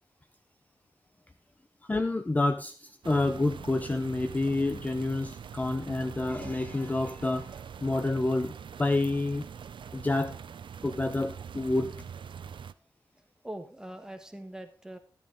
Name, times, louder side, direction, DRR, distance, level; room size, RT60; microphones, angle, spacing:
voice 1, 1.8-8.5 8.8-9.5 9.9-10.4 10.8-12.0, left 2 dB, 20° left, 9 dB, 0.6 m, -28 dB
sound 1, 3.0-12.7, right 7 dB, 80° right, 0.6 m, -43 dB
voice 2, 13.2-15.0, right 1 dB, 10° right, 6 dB, 1.4 m, -43 dB
13.5 x 10.5 x 3.9 m, 0.33 s
wide cardioid pair, 165°, 8 cm